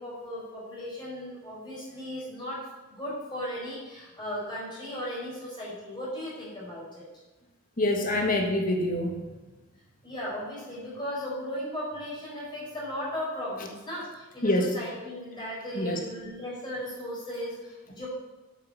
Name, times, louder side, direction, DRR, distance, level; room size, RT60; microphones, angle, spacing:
voice 1, 0.0-7.0 10.0-18.1, equal, 20° left, -7 dB, 4.4 m, -36 dB
voice 2, 7.8-9.2 14.4-14.7 15.7-16.0, left 1 dB, 40° left, 2 dB, 1.7 m, -25 dB
8.4 x 7.8 x 7.3 m, 1.2 s
head